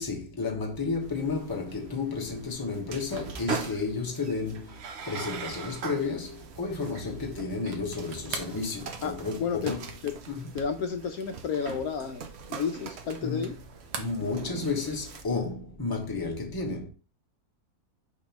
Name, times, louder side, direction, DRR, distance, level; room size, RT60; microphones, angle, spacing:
voice 1, 0.0-9.9 10.3-10.5 13.2-13.5 14.0-16.9, left 4 dB, 15° left, 1.1 m, -32 dB
sound 1, 1.0-15.2, right 5 dB, 55° right, 0.8 m, -41 dB
sound 2, 7.6-13.6 13.9-14.9, right 6 dB, 80° right, 1.5 m, -42 dB
voice 2, 9.4-9.7 10.0-10.1 10.5-12.2 12.5-13.6, left 6 dB, 70° left, 1.1 m, -31 dB
6.1 x 5.3 x 3.0 m
omnidirectional pair, 1.7 m